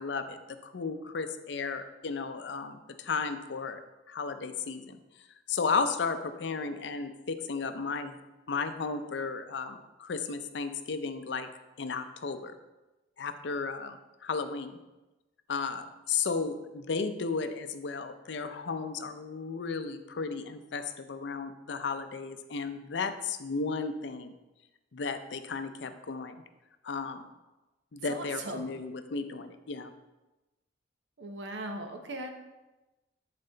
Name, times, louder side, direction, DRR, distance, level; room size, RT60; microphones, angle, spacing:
voice 1, 0.0-3.8 4.1-5.0 5.5-8.2 8.5-11.5 11.8-12.5 13.2-14.8 15.5-24.3 24.9-26.4 26.8-27.2 27.9-29.9, left 4 dB, 70° left, 9 dB, 0.5 m, -34 dB
voice 2, 28.1-28.7 31.2-32.3, right 2 dB, 75° right, 5 dB, 0.8 m, -38 dB
7.6 x 4.2 x 3.9 m, 1.1 s
head